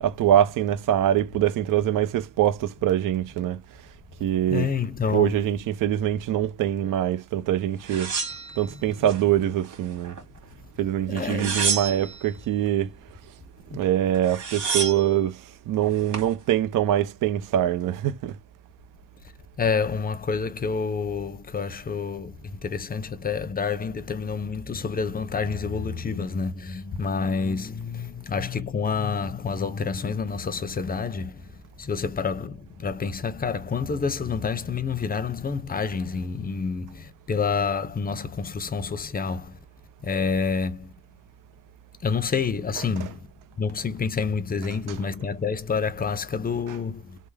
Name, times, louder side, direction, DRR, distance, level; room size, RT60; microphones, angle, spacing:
voice 1, 0.0-3.6 4.2-4.7 5.1-8.1 8.6-10.1 10.8-12.9 13.7-18.4 42.7-43.1 44.7-45.1 46.7-46.8, right 11 dB, 85° right, 0.5 m, -24 dB
voice 2, 4.5-5.3 11.1-11.6 13.7-13.8 19.6-31.4 31.8-39.5 40.0-40.9 42.0-43.2 43.6-47.2, left 5 dB, 30° left, 0.5 m, -28 dB
sound 1, 7.8-9.2 9.6-10.4 11.2-12.3 13.8-13.9 14.1-15.1 15.8-16.3, right 5 dB, 65° right, 1.9 m, -29 dB
3.4 x 2.0 x 3.2 m
cardioid pair, 115°, 32 cm